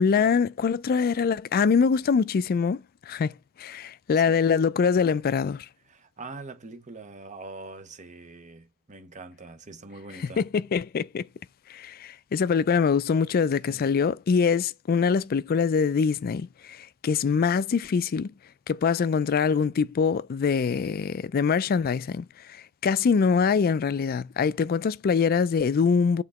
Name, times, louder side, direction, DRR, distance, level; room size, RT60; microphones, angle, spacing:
voice 1, 0.0-5.7 10.2-11.2 11.7-18.3 18.7-26.2, left 6 dB, 45° left, 0.3 m, -24 dB
voice 2, 5.9-10.4 13.6-13.9, right 3 dB, 35° right, 0.8 m, -43 dB
7.0 x 3.7 x 4.1 m
head